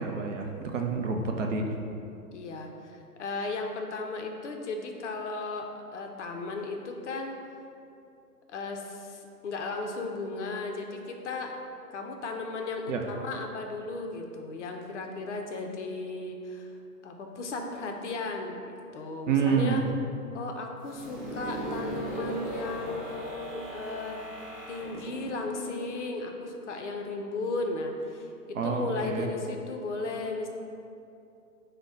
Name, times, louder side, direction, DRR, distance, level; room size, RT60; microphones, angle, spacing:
voice 1, 0.0-1.7 12.9-13.0 19.3-19.8 28.5-29.3, right 5 dB, 50° right, 2 dB, 0.6 m, -28 dB
voice 2, 2.3-7.4 8.5-11.5 11.9-16.7 17.0-19.8 20.3-24.2 24.7-30.5, left 3 dB, 50° left, 2 dB, 0.5 m, -35 dB
sound 1, 20.8-26.5, right 1 dB, 5° right, 1.1 m, -38 dB
5.1 x 2.1 x 4.7 m, 2.6 s
hypercardioid pair, 135°, 48 cm